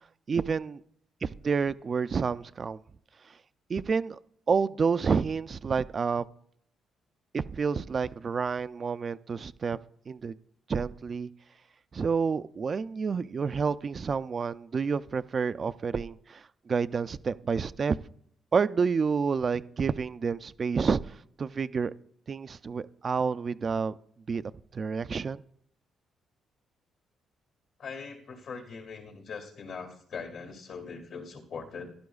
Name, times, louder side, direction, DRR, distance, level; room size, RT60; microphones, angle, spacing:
voice 1, 0.3-0.8 1.2-2.8 3.3-3.4 3.7-4.2 4.5-6.2 7.3-9.8 10.1-10.3 10.7-11.3 11.9-18.0 18.5-21.9 22.3-24.0 24.3-24.4 24.7-25.4, right 5 dB, 40° right, 0.3 m, -29 dB
voice 2, 27.8-31.9, left 5 dB, 70° left, 2.2 m, -41 dB
15.5 x 11.5 x 2.4 m
cardioid pair, 90°, 0 cm